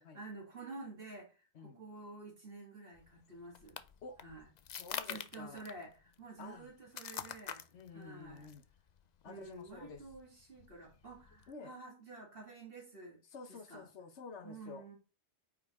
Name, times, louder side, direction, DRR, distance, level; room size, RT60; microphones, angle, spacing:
voice 1, 0.1-3.8 4.2-4.5 5.1-7.6 7.9-8.5 9.2-13.2 13.5-13.9 14.4-15.0, right 3 dB, 55° right, -2 dB, 2.9 m, -50 dB
sound 1, 2.9-11.5, left 8 dB, 50° left, 0.5 m, -48 dB
voice 2, 4.8-5.7 6.4-6.7 7.7-8.6 9.2-10.0 11.5-11.7 13.3-14.8, left 4 dB, 75° left, 9 dB, 1.2 m, -50 dB
9.0 x 4.9 x 3.6 m, 0.33 s
omnidirectional pair, 1.2 m